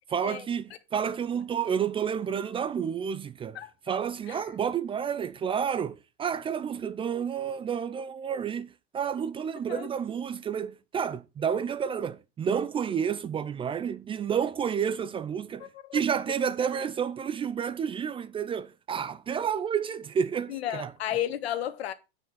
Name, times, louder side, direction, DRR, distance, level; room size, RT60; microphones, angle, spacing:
voice 1, 0.1-3.6 3.9-20.9, right 7 dB, 15° right, 0.4 m, -30 dB
voice 2, 15.6-16.0 20.5-21.9, left 11 dB, 85° left, 1.4 m, -33 dB
9.2 x 5.3 x 5.6 m
supercardioid pair, 125°, 31 cm